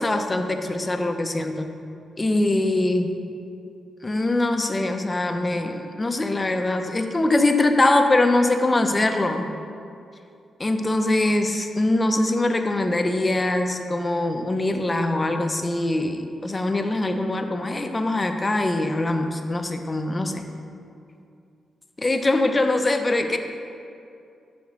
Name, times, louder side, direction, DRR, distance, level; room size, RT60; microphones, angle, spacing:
voice 1, 0.0-1.7 2.2-3.1 4.0-9.5 10.6-20.5 22.0-23.4, left 2 dB, 20° left, 6 dB, 0.5 m, -23 dB
5.6 x 5.1 x 5.2 m, 2.5 s
cardioid pair, 105°, 0 cm